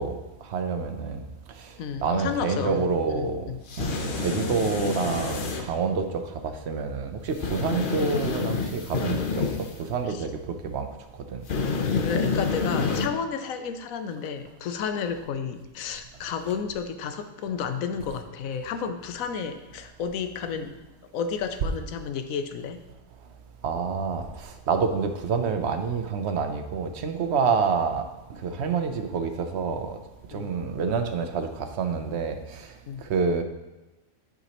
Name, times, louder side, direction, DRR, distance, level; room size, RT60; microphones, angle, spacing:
voice 1, 0.0-3.5 3.8-10.9 11.3-11.4 23.6-30.0 30.3-33.4, right 5 dB, 60° right, 7 dB, 0.8 m, -28 dB
voice 2, 1.8-3.6 10.1-10.2 11.8-20.8 21.1-22.8 30.3-30.5 32.9-33.1, left 6 dB, 80° left, 8 dB, 1.1 m, -32 dB
sound 1, 3.7-5.6 7.4-9.7 11.5-13.1, left 4 dB, 50° left, 0.7 m, -28 dB
11.0 x 5.0 x 2.9 m, 1.0 s
omnidirectional pair, 1.4 m